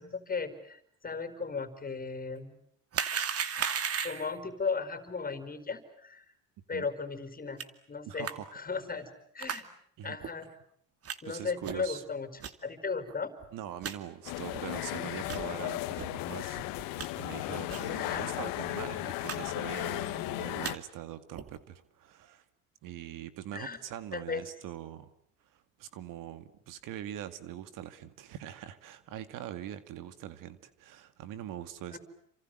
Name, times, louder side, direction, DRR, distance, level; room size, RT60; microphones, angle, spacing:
voice 1, 0.0-2.6 4.0-6.2 6.7-7.6 7.9-9.1 9.3-9.7 10.0-10.5 11.2-13.3 18.0-18.2 23.5-23.8 24.1-24.4 31.9-32.0, left 5 dB, 25° left, 10 dB, 4.7 m, -36 dB
sound 1, 2.9-4.4 7.6-7.7 8.2-8.3 9.4-9.6 10.2-10.3 11.1-11.2 11.6-11.9 12.4-12.5 13.1-13.2 13.4-13.5 13.8-14.0 14.5-14.6 15.2-15.5 16.0-16.1 16.5-17.1 17.7-17.9 18.2-18.3 18.5-18.7 19.2-19.4 19.6-20.0 20.4-20.7 21.3-21.6, right 7 dB, 45° right, 2.5 m, -35 dB
voice 2, 8.1-8.5 10.0-10.2 11.3-12.0 13.5-22.4 22.8-25.1 25.5-32.0, right 11 dB, 65° right, 12 dB, 2.2 m, -43 dB
sound 2, 14.2-20.7, left 18 dB, 75° left, 1.6 m, -35 dB
29.0 x 26.0 x 7.8 m, 0.68 s
supercardioid pair, 95°, 34 cm